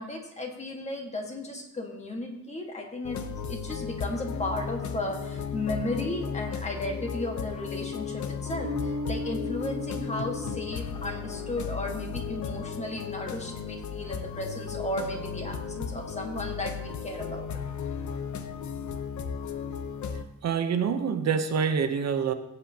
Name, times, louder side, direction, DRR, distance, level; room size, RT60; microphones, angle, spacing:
voice 1, 0.0-3.2 3.5-17.5, left 1 dB, 25° left, 2 dB, 1.6 m, -35 dB
sound 1, 3.0-20.2, left 6 dB, 80° left, 0.8 m, -35 dB
sound 2, 8.6-12.0, left 1 dB, 85° right, 2.2 m, -37 dB
voice 2, 20.4-22.3, right 6 dB, 65° right, 8 dB, 0.8 m, -26 dB
16.0 x 8.0 x 2.9 m, 0.96 s
wide cardioid pair, 175°, 29 cm